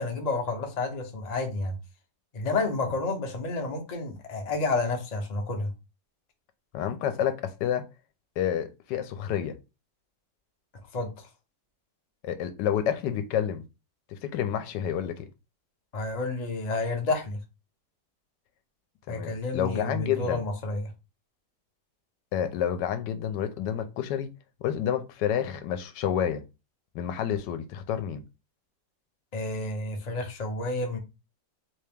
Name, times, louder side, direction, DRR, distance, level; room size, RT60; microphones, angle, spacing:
voice 1, 0.0-1.7 2.3-5.7 10.9-11.3 15.9-17.4 19.1-20.9 29.3-31.0, left 3 dB, 50° left, 0.5 m, -30 dB
voice 2, 6.7-7.9 8.4-9.6 12.2-13.6 14.1-15.3 19.1-20.4 22.3-24.3 24.6-26.4 26.9-28.2, left 9 dB, 80° left, 1.2 m, -29 dB
3.1 x 2.8 x 3.4 m
omnidirectional pair, 1.9 m